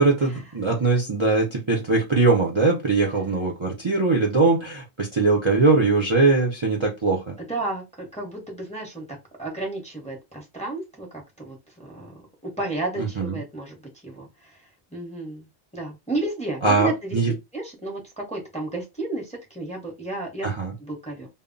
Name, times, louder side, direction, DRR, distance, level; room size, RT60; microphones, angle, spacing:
voice 1, 0.0-7.3 13.0-13.4 16.6-17.3 20.4-20.7, right 3 dB, 35° right, -1 dB, 0.5 m, -21 dB
voice 2, 7.4-9.0 9.4-13.8 14.0-14.6 14.9-15.5 15.7-20.5 20.8-21.3, right 2 dB, 10° left, -1 dB, 0.6 m, -32 dB
2.1 x 2.0 x 3.7 m, 0.23 s
omnidirectional pair, 1.1 m